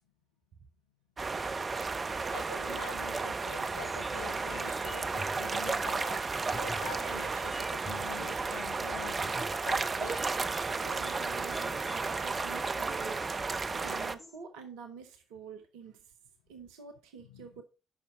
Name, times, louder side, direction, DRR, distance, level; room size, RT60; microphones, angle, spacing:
sound 1, 1.2-14.1, right 4 dB, 35° right, 0.5 m, -33 dB
voice 1, 2.3-6.2 6.5-9.4 9.6-10.2 17.3-17.5, left 6 dB, 75° left, 0.5 m, -45 dB
sound 2, 3.7-14.4, left 1 dB, 35° left, 3.7 m, -49 dB
voice 2, 10.8-13.4 13.7-16.1 16.5-17.6, right 6 dB, 65° right, 0.7 m, -47 dB
11.0 x 5.7 x 3.5 m
figure-of-eight pair, 40°, 0 cm